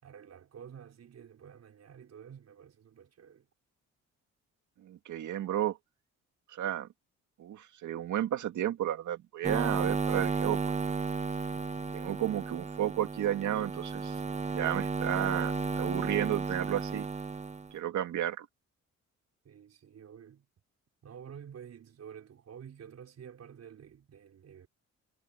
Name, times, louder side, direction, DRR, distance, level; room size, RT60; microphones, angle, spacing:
voice 1, 0.0-3.5 19.4-20.5 21.0-24.7, right 8 dB, 55° right, 5.8 m, -50 dB
voice 2, 4.8-5.8 6.5-6.9 7.4-10.8 11.9-14.1 14.5-17.1 17.7-18.5, right 11 dB, 75° right, 2.4 m, -32 dB
sound 1, 9.4-17.7, right 4 dB, 20° right, 1.0 m, -33 dB
cardioid pair, 90°, 30 cm